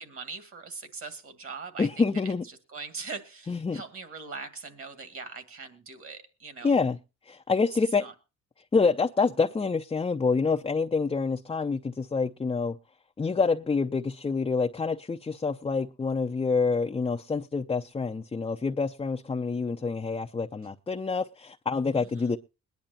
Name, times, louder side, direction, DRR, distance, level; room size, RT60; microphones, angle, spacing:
voice 1, 0.0-6.8 8.0-8.1 21.9-22.3, right 4 dB, 45° right, 2.1 m, -41 dB
voice 2, 1.8-2.4 3.5-3.8 6.6-7.0 7.3-8.0 8.7-12.8 13.2-22.4, left 4 dB, 20° left, 0.6 m, -27 dB
22.0 x 10.5 x 2.7 m
cardioid pair, 90°, 30 cm